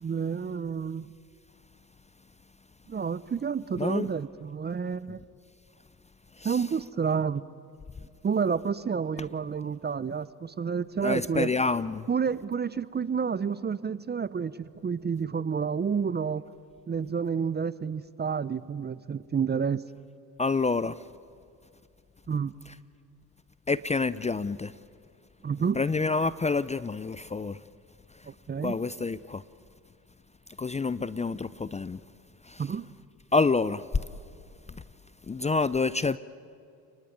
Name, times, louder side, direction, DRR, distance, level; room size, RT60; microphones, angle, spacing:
voice 1, 0.0-1.1 2.9-5.2 6.4-7.4 8.2-11.5 12.1-16.4 16.9-19.8 22.3-22.5 25.4-25.8 28.3-28.7 32.6-32.9, right 6 dB, 25° right, 0.7 m, -29 dB
voice 2, 3.8-4.1 6.4-6.6 11.0-12.1 20.4-21.0 23.7-24.7 25.7-27.6 28.6-29.4 30.6-32.0 32.4-32.7 33.3-33.8 34.7-34.8 35.3-36.2, left 4 dB, 15° left, 0.6 m, -28 dB
29.5 x 20.0 x 9.3 m
supercardioid pair, 70°, 39 cm